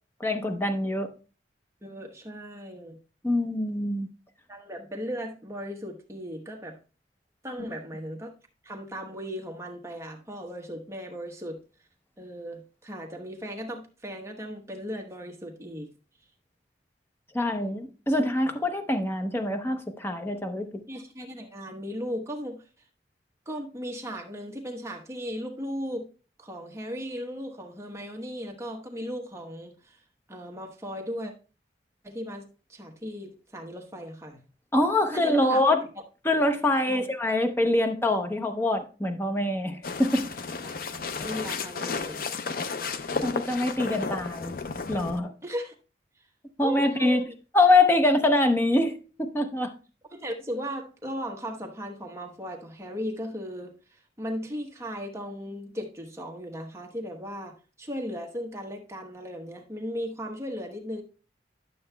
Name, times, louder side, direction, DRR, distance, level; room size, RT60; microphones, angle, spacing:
voice 1, 0.2-1.1 3.2-4.1 17.3-20.7 34.7-35.9 36.2-40.3 43.2-44.5 44.9-45.3 46.6-47.2 47.5-49.7, left 2 dB, 15° left, 0.7 m, -24 dB
voice 2, 1.8-3.0 4.5-6.8 7.4-8.3 8.6-11.6 12.2-15.9 20.9-22.6 23.5-26.1 26.4-30.0 30.3-31.3 32.0-32.4 32.7-34.4 35.1-35.6 36.9-37.0 40.6-42.5 45.4-45.7 46.6-47.3 50.1-61.0, equal, 15° right, 1.0 m, -37 dB
sound 1, 39.8-45.2, left 4 dB, 50° left, 0.5 m, -33 dB
11.5 x 6.9 x 2.2 m
head